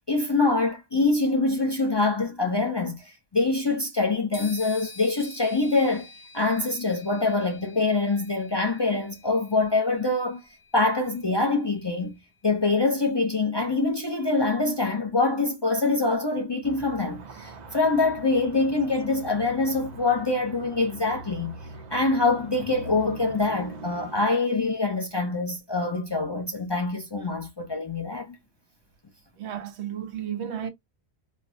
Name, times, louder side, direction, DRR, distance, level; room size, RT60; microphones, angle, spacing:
voice 1, 0.1-6.1 6.3-10.4 10.7-12.2 12.4-21.6 21.9-28.4, left 3 dB, 30° left, 0.5 m, -25 dB
sound 1, 4.3-12.0, left 2 dB, 65° left, 1.6 m, -48 dB
sound 2, 16.6-24.3, right 2 dB, 50° right, 0.6 m, -42 dB
voice 2, 29.4-30.7, right 9 dB, 85° right, 0.9 m, -33 dB
4.0 x 2.0 x 2.6 m
omnidirectional pair, 1.1 m